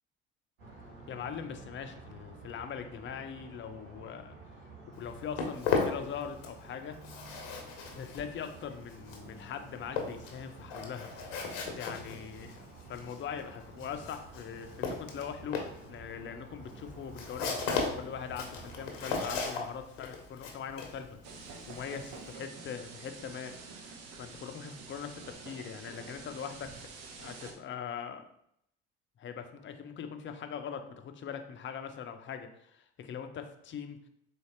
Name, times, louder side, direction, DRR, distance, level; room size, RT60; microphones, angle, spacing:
sound 1, 0.6-19.4, right 3 dB, 75° right, 1.5 m, -51 dB
voice 1, 1.1-4.4 4.9-7.0 7.9-26.7 27.2-28.3 29.2-34.0, left 7 dB, 40° left, 7 dB, 0.6 m, -42 dB
Walk footsteps, 4.9-6.7 6.9-22.3, left 5 dB, 70° left, 0.9 m, -37 dB
sound 2, 21.2-27.5, right 4 dB, 60° right, 0.8 m, -48 dB
4.2 x 3.1 x 2.9 m, 0.73 s
hypercardioid pair, 65°, 31 cm